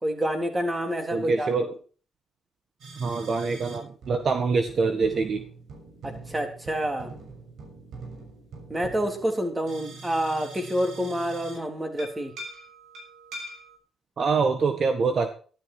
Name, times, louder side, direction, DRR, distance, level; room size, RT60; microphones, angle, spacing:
voice 1, 0.0-1.7 6.0-7.1 8.7-12.3, equal, 15° right, 5 dB, 3.7 m, -28 dB
voice 2, 1.1-1.7 3.0-5.4 14.2-15.3, right 4 dB, 50° right, 8 dB, 1.6 m, -25 dB
sound 1, 2.8-3.8 4.0-11.6 12.0-13.8, right 2 dB, 70° right, 6.6 m, -43 dB
13.0 x 12.5 x 4.7 m, 0.38 s
cardioid pair, 90°, 0 cm